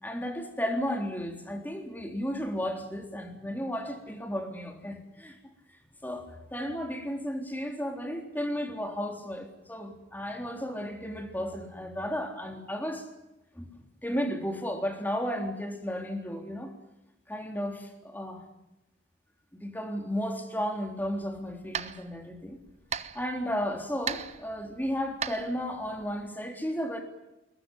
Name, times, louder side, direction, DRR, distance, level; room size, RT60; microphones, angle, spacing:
voice 1, 0.0-5.4 6.0-13.1 13.6-16.7 17.3-18.4 19.6-22.6 23.1-27.0, equal, 10° left, 3 dB, 3.6 m, -34 dB
sound 1, 21.0-26.3, right 7 dB, 35° right, 1.0 m, -40 dB
22.0 x 19.5 x 9.8 m, 0.94 s
head